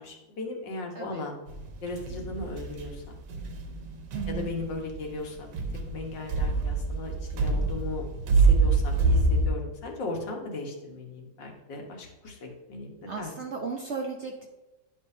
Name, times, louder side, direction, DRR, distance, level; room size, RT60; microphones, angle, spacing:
voice 1, 0.0-1.4 1.8-3.2 4.3-5.5 5.9-8.0 8.3-13.3, left 3 dB, 75° left, 1 dB, 1.9 m, -37 dB
voice 2, 0.9-1.3 4.1-4.5 12.2-12.3 13.1-14.5, right 5 dB, 55° right, 0 dB, 0.8 m, -35 dB
sound 1, 1.5-9.5, right 3 dB, 75° right, 1.6 m, -26 dB
10.0 x 5.6 x 2.7 m, 1.1 s
omnidirectional pair, 2.0 m